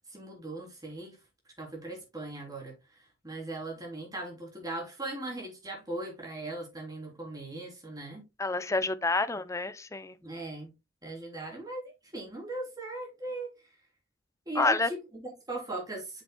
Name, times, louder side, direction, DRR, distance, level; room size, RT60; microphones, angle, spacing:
voice 1, 0.1-1.2 1.6-8.2 10.2-10.7 11.0-13.5 14.5-16.2, right 2 dB, 20° right, 3.4 m, -39 dB
voice 2, 8.4-10.1 14.6-14.9, left 3 dB, 15° left, 0.5 m, -28 dB
7.9 x 6.9 x 2.2 m
head